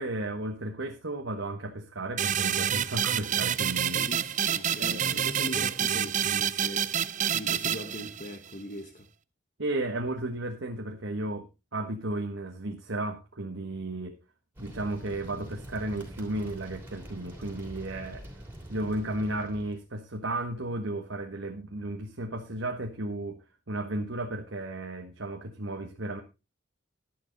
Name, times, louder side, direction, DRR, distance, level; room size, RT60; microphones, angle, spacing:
voice 1, 0.0-4.0 4.8-5.2 9.6-14.2 14.6-18.2 18.7-23.4 23.7-26.2, right 1 dB, 70° right, 1.3 m, -34 dB
sound 1, 2.2-8.5, right 9 dB, 40° right, 0.5 m, -28 dB
voice 2, 3.9-9.1, left 1 dB, 40° left, 1.1 m, -40 dB
sound 2, 14.6-19.8, right 1 dB, 10° right, 3.0 m, -44 dB
11.0 x 10.5 x 3.9 m
head